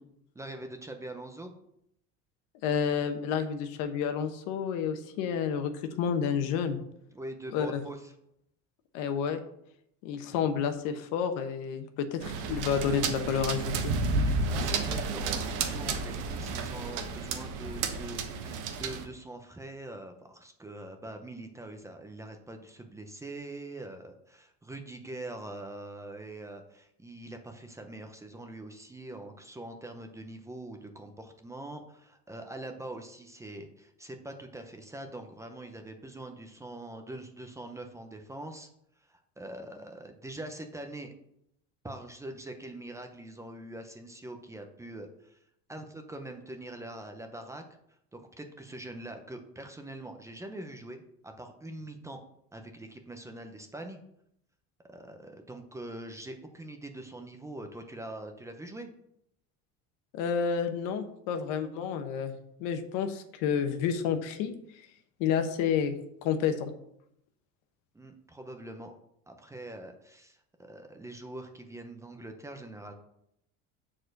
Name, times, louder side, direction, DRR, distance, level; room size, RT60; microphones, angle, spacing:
voice 1, 0.3-1.5 7.1-8.1 14.5-38.7 39.0-41.1 41.8-45.4 45.7-47.6 48.1-52.2 52.5-54.0 54.9-58.9 67.9-68.9 69.3-72.9, right 1 dB, 10° right, 5 dB, 0.7 m, -43 dB
voice 2, 2.6-6.8 7.5-7.8 8.9-9.4 10.0-13.9 60.1-62.3 62.6-64.9 65.2-66.0 66.2-66.7, left 7 dB, 70° left, 8 dB, 1.1 m, -30 dB
sound 1, 12.2-19.0, right 3 dB, 65° right, 1.1 m, -31 dB
7.3 x 4.4 x 6.5 m, 0.74 s
cardioid pair, 140°, 33 cm